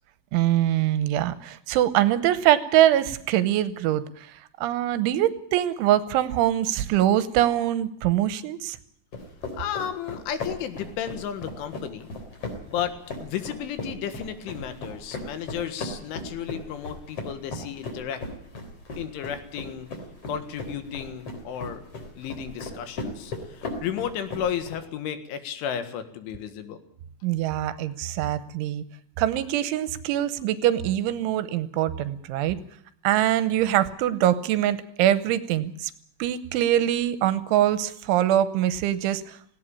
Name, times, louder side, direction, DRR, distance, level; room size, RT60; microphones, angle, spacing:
voice 1, 0.3-4.3 4.6-8.8 27.2-28.8 29.2-32.6 33.0-35.9 36.2-39.4, right 12 dB, 75° right, 14 dB, 3.1 m, -23 dB
sound 1, 9.1-24.8, left 2 dB, 30° left, 4.1 m, -37 dB
voice 2, 9.5-12.1 12.7-18.2 19.0-19.9 20.3-21.9 22.2-26.8, left 9 dB, 70° left, 10 dB, 3.9 m, -33 dB
18.0 x 17.0 x 8.7 m, 0.66 s
omnidirectional pair, 5.9 m